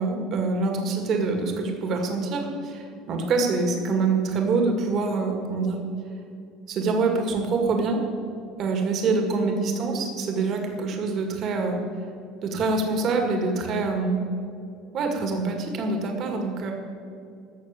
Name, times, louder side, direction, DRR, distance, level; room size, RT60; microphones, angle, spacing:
voice 1, 0.0-5.8 6.7-8.0 8.6-11.8 12.4-14.2 14.9-16.7, right 3 dB, 40° right, 3 dB, 2.1 m, -25 dB
14.0 x 6.6 x 8.3 m, 2.6 s
cardioid pair, 160°, 0 cm